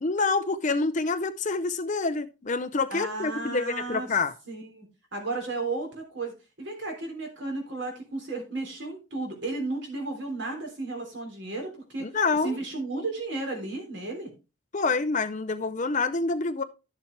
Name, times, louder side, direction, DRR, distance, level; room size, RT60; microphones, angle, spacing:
voice 1, 0.0-4.3 12.0-12.6 14.7-16.6, left 3 dB, 35° left, 0.6 m, -27 dB
voice 2, 2.9-4.1 4.5-4.9 5.1-6.3 6.6-12.1 12.4-14.3, right 3 dB, 55° right, 3.6 m, -33 dB
12.0 x 7.1 x 3.3 m
head